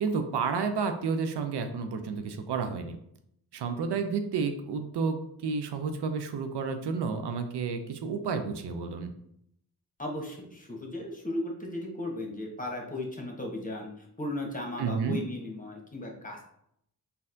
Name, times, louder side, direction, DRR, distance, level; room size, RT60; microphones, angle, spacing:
voice 1, 0.0-3.0 3.5-9.1 14.8-15.2, right 5 dB, 80° right, 7 dB, 0.5 m, -31 dB
voice 2, 10.0-13.9 14.2-16.4, left 1 dB, 20° left, 0 dB, 1.1 m, -36 dB
4.0 x 2.7 x 2.6 m, 0.73 s
cardioid pair, 50°, 40 cm